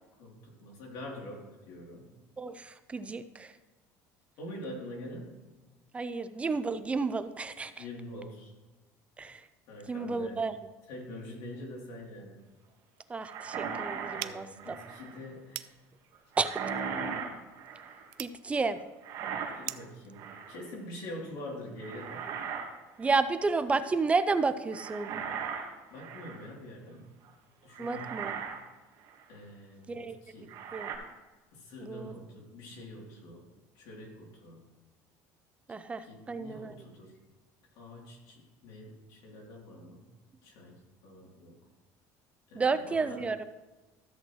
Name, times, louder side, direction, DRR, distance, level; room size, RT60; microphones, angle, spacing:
voice 1, 0.2-2.1 4.4-5.3 7.8-8.5 9.7-10.4 10.9-12.4 14.1-15.7 19.6-22.2 25.9-27.1 27.6-28.2 29.3-30.5 31.5-33.5 33.7-34.6 36.0-37.1 37.7-40.0 40.4-41.6 42.5-43.2, left 1 dB, 70° left, -2 dB, 3.0 m, -45 dB
voice 2, 2.4-3.5 5.9-7.7 9.2-9.4 9.9-10.6 13.1-14.7 16.4-16.5 18.2-18.8 23.0-25.1 27.8-28.4 29.9-30.2 30.7-30.9 31.8-32.1 35.7-36.8 42.5-43.4, right 4 dB, 15° right, 11 dB, 0.4 m, -31 dB
sound 1, 13.2-15.2 16.3-18.1 19.0-19.8 20.2-20.7 21.8-22.7 23.0-23.3 24.7-26.5 27.2-27.3 27.8-28.6 29.1-29.2 30.5-31.0, right 6 dB, 55° right, 1.5 m, -38 dB
sound 2, 14.2-20.0, right 18 dB, 75° right, 0.4 m, -45 dB
13.5 x 7.7 x 3.1 m, 1.2 s
cardioid pair, 140°, 7 cm